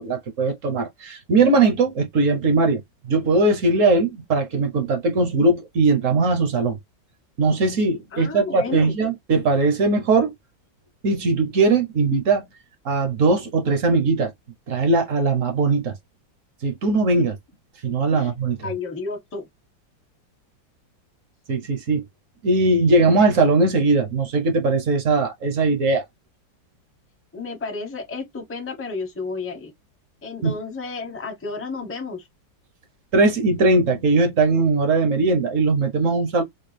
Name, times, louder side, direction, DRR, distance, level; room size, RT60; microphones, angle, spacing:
voice 1, 0.0-6.8 7.4-10.3 11.0-12.5 12.8-14.3 14.7-16.0 16.6-17.4 17.8-18.6 21.5-22.0 22.4-26.0 30.4-30.6 33.1-36.4, right 3 dB, 55° right, 0.9 m, -20 dB
voice 2, 8.1-8.9 18.1-18.3 18.6-19.5 27.3-29.7 30.2-32.3, left 4 dB, 15° left, 0.5 m, -31 dB
4.4 x 2.2 x 3.2 m
omnidirectional pair, 2.0 m